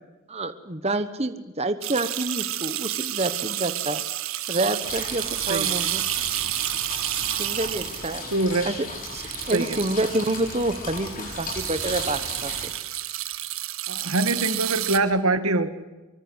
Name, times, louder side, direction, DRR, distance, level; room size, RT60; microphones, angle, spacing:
voice 1, 0.3-4.0 4.5-6.0 7.4-8.2 8.6-8.8 9.1-12.7, right 2 dB, 30° right, 10 dB, 1.2 m, -28 dB
sound 1, 1.8-15.0, right 14 dB, 70° right, 1.6 m, -30 dB
sound 2, 4.8-12.7, left 3 dB, 40° left, 7.2 m, -36 dB
voice 2, 8.3-8.7 9.5-9.8 13.9-15.7, right 2 dB, 85° right, 11 dB, 2.0 m, -24 dB
25.0 x 24.5 x 8.1 m, 1.2 s
head